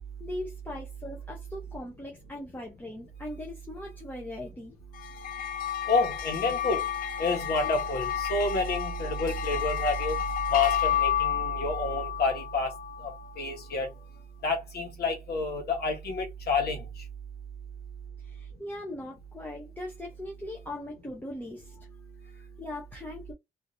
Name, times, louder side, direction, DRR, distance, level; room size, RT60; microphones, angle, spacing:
voice 1, 0.2-4.7 9.0-9.2 18.2-21.9 22.2-23.3, left 1 dB, 10° left, 0.7 m, -40 dB
sound 1, 5.0-13.6, left 10 dB, 60° left, 0.4 m, -31 dB
voice 2, 5.9-6.8 7.2-10.2 10.5-12.7 13.0-13.1 13.4-13.9 14.4-16.8, left 3 dB, 75° left, 1.2 m, -28 dB
3.0 x 2.6 x 2.6 m
wide cardioid pair, 170°, 17 cm